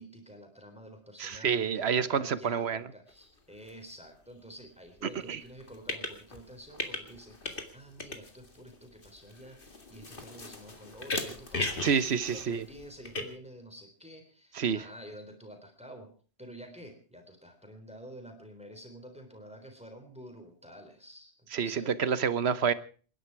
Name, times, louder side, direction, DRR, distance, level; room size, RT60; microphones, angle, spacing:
voice 1, 0.0-7.4 7.7-16.1 16.4-22.0, equal, 5° right, 4 dB, 3.7 m, -49 dB
voice 2, 1.2-2.8 5.0-5.4 11.8-12.6 14.5-14.9 21.5-22.7, right 7 dB, 85° right, 15 dB, 1.3 m, -28 dB
sound 1, 3.1-3.2 3.6-3.7 5.5-6.4 6.7-7.7 8.0-13.2, left 2 dB, 55° left, 2.4 m, -37 dB
27.5 x 11.0 x 4.7 m, 0.39 s
omnidirectional pair, 1.1 m